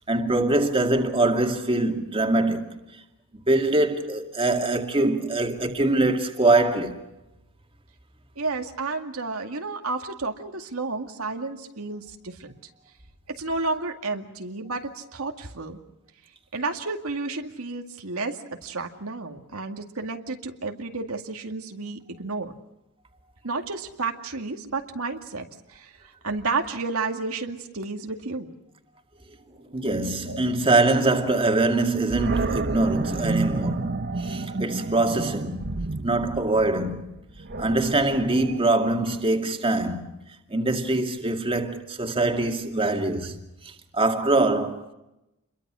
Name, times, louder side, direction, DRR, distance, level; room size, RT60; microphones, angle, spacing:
voice 1, 0.1-2.8 3.5-7.0 29.7-35.7 36.0-37.1 37.6-40.2 40.5-43.4 43.9-44.9, right 2 dB, 25° right, 2.3 m, -23 dB
voice 2, 8.4-12.5 13.4-15.8 16.5-22.5 23.4-25.9 26.2-28.5 30.3-30.4, right 3 dB, 90° right, 2.2 m, -31 dB
Animal, 32.1-39.2, right 3 dB, 50° right, 1.0 m, -31 dB
28.5 x 22.5 x 6.3 m
head